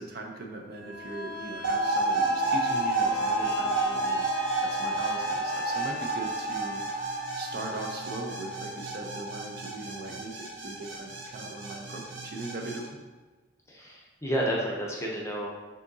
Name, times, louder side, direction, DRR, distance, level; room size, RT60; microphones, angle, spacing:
voice 1, 0.0-6.8 7.4-12.9, right 2 dB, 50° right, 2 dB, 0.5 m, -39 dB
sound 1, 0.8-10.3 10.7-10.8, left 1 dB, 65° left, 0.6 m, -38 dB
sound 2, 1.6-12.8, right 2 dB, 75° right, 0.8 m, -30 dB
voice 2, 13.7-15.5, equal, 15° left, -2 dB, 0.6 m, -30 dB
6.1 x 2.7 x 2.7 m, 1.3 s
head